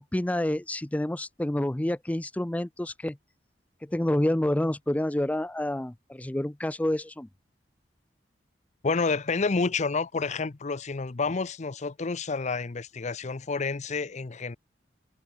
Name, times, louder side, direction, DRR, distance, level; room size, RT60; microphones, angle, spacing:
voice 1, 0.1-3.2 3.8-7.3, left 1 dB, 10° left, 0.4 m, -28 dB
voice 2, 8.8-14.6, left 4 dB, 40° left, 0.6 m, -29 dB
head